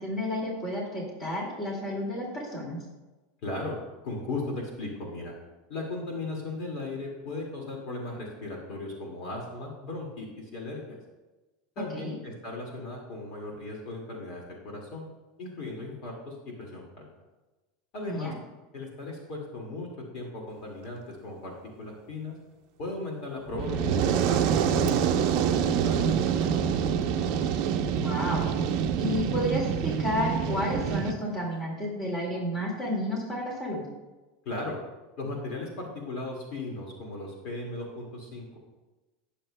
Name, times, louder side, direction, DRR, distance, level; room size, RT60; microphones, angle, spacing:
voice 1, 0.0-2.8 11.9-12.2 18.1-18.3 25.8-26.1 28.0-28.5 29.0-33.8, left 1 dB, 20° left, -2 dB, 2.2 m, -31 dB
voice 2, 3.4-3.8 4.0-5.3 5.7-11.0 11.8-15.0 15.4-17.1 17.9-18.3 18.7-19.9 20.1-22.4 22.8-25.2 25.5-27.0 34.5-34.8 35.2-38.6, left 2 dB, 45° left, -1 dB, 2.0 m, -37 dB
Fire, 23.5-31.1, right 8 dB, 45° right, 0.7 m, -26 dB
18.5 x 6.9 x 2.2 m, 1.1 s
supercardioid pair, 165°, 0 cm